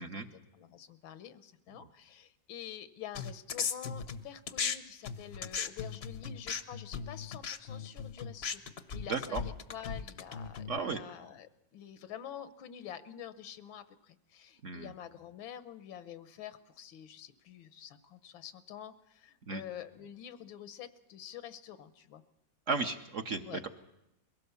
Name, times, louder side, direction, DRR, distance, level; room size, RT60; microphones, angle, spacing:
voice 1, 0.0-8.6 8.9-22.2 23.5-23.6, left 10 dB, 90° left, 12 dB, 1.7 m, -47 dB
sound 1, 3.1-4.8 5.0-10.8, left 6 dB, 55° left, 0.7 m, -37 dB
voice 2, 9.1-9.4 10.7-11.0 14.6-14.9 19.5-19.6 22.7-23.7, right 4 dB, 55° right, 6 dB, 0.9 m, -34 dB
22.5 x 17.0 x 6.9 m, 0.87 s
omnidirectional pair, 2.1 m